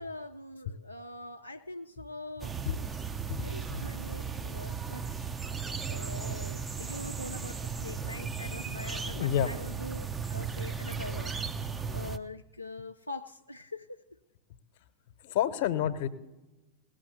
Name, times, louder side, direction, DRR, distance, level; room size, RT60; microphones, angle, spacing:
voice 1, 0.0-2.6 3.4-5.1 5.9-11.6 11.9-14.2, left 2 dB, 85° left, 5 dB, 0.3 m, -43 dB
sound 1, 2.4-12.2, right 6 dB, 15° right, 0.5 m, -36 dB
voice 2, 9.1-9.5 15.2-16.1, left 10 dB, 50° left, 12 dB, 0.9 m, -29 dB
18.0 x 6.5 x 7.9 m, 1.1 s
figure-of-eight pair, 90°, 0 cm